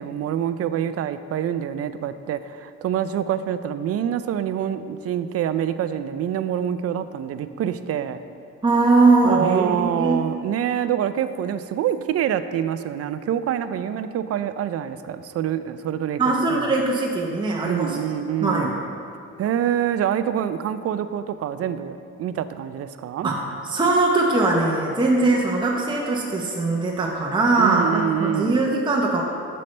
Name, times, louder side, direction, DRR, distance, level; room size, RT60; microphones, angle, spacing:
voice 1, 0.0-8.2 9.2-16.2 16.5-16.8 17.6-18.8 19.4-23.3 27.6-28.6, right 10 dB, 55° right, 12 dB, 0.4 m, -26 dB
voice 2, 8.6-10.2 16.2-18.0 18.4-18.7 23.2-29.2, right 3 dB, 15° right, -2 dB, 0.7 m, -21 dB
8.4 x 6.5 x 3.2 m, 2.5 s
cardioid pair, 90°, 30 cm